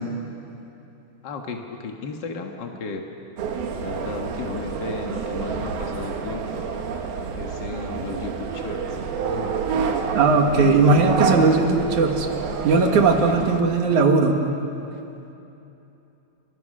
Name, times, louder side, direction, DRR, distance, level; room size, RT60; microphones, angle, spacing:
voice 1, 1.2-3.0 3.8-6.7 7.3-9.0 9.3-9.6 10.5-11.4 13.2-13.5, left 4 dB, 55° left, 2 dB, 1.2 m, -34 dB
sound 1, 3.4-13.6, right 5 dB, 85° right, 3.6 m, -28 dB
voice 2, 10.1-12.3 12.6-14.4, right 4 dB, 60° right, 3 dB, 3.2 m, -18 dB
30.0 x 26.0 x 6.5 m, 2.9 s
omnidirectional pair, 4.2 m